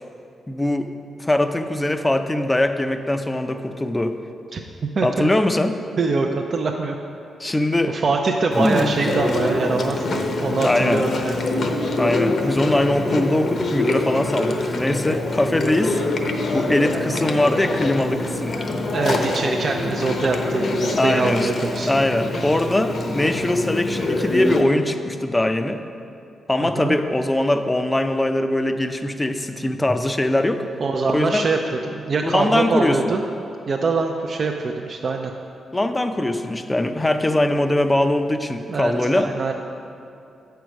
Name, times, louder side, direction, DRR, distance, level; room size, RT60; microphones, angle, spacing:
voice 1, 0.5-0.9 1.2-4.2 5.0-5.7 7.4-8.0 8.5-8.9 10.6-11.0 12.0-16.0 16.5-18.6 21.0-21.5 21.9-25.8 26.5-30.6 31.1-31.4 32.2-33.0 35.7-39.3, left 1 dB, 15° left, 8 dB, 0.5 m, -21 dB
voice 2, 4.5-5.3 6.0-7.0 7.5-7.6 7.9-10.0 10.4-11.4 18.9-21.9 26.6-27.0 30.8-31.6 31.9-33.2 33.7-35.3 38.7-39.5, right 4 dB, 45° right, 2 dB, 0.5 m, -23 dB
Chewing mastication, 8.5-24.6, left 2 dB, 55° left, 0.8 m, -25 dB
8.1 x 4.6 x 6.3 m, 2.6 s
cardioid pair, 90°, 0 cm